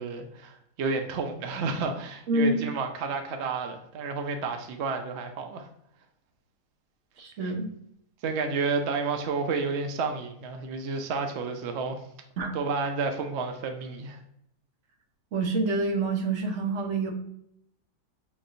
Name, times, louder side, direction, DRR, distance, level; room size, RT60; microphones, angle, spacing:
voice 1, 0.0-5.7 8.2-12.0 12.5-14.2, right 4 dB, 80° right, 5 dB, 0.6 m, -31 dB
voice 2, 2.3-2.6 7.2-7.7 12.4-12.5 15.3-17.1, right 2 dB, 55° right, 3 dB, 0.9 m, -27 dB
6.0 x 3.0 x 2.5 m, 0.75 s
omnidirectional pair, 1.8 m